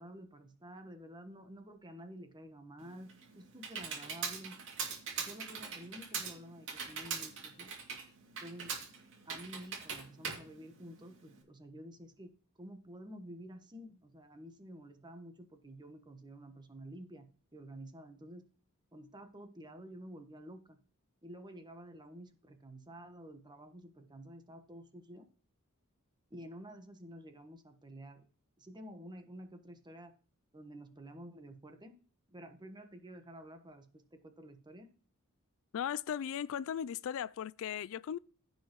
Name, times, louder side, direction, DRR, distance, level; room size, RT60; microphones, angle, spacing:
voice 1, 0.0-4.6 5.2-7.7 8.3-8.8 9.3-12.3 12.6-18.5 18.9-20.8 21.2-25.3 26.3-28.3 28.6-30.1 30.5-31.9 32.3-34.9, equal, 20° right, 1.2 m, -50 dB
Computer keyboard, 2.8-11.4, right 6 dB, 60° right, 2.5 m, -42 dB
voice 2, 35.7-38.2, left 9 dB, 65° left, 0.3 m, -37 dB
15.0 x 5.5 x 3.1 m
head